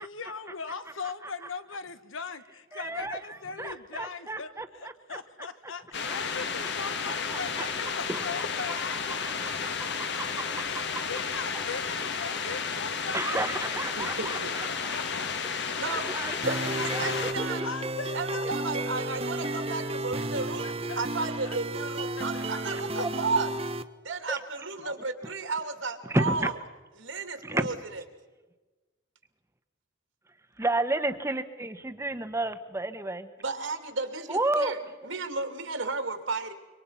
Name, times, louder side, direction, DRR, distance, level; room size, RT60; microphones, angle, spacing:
voice 1, 0.0-10.2 10.6-14.4 14.9-15.3 15.9-16.0 16.8-19.0 20.6-21.6 22.2-23.1 24.8-25.0, left 5 dB, 80° left, 12 dB, 1.4 m, -40 dB
voice 2, 2.7-5.2 6.1-6.2 7.0-7.7 8.1-8.2 10.2-10.4 10.7-10.8 13.1-15.0 16.1-17.7 18.4-18.5 19.4-19.9 22.4-23.1 25.2-25.3 26.0-26.5 27.4-27.7 30.6-33.3 34.3-34.7, right 2 dB, 15° right, 10 dB, 1.1 m, -32 dB
sound 1, 5.9-17.3, left 5 dB, 60° left, 1.6 m, -32 dB
voice 3, 14.0-14.5 15.8-16.0 16.4-17.6 18.1-20.7 21.0-23.5 24.0-26.5 27.0-27.7 33.4-34.8 35.0-36.5, right 3 dB, 75° right, 8 dB, 2.7 m, -33 dB
sound 2, 16.4-23.8, right 2 dB, 30° right, 0.8 m, -33 dB
26.0 x 24.5 x 5.7 m, 1.2 s
head